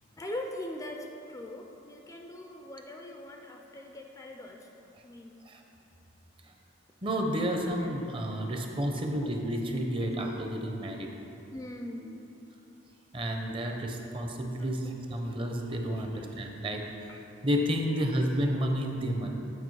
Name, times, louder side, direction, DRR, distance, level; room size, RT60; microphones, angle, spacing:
voice 1, 0.2-5.4 7.5-7.9 8.3-8.7 9.2-9.4 10.2-10.3 11.5-12.3 15.1-15.2 17.1-17.2 17.9-18.0, left 1 dB, 15° left, 2 dB, 0.4 m, -42 dB
voice 2, 7.0-11.1 13.1-17.1 17.4-19.3, equal, 25° right, 2 dB, 0.6 m, -31 dB
8.3 x 4.9 x 4.7 m, 2.8 s
head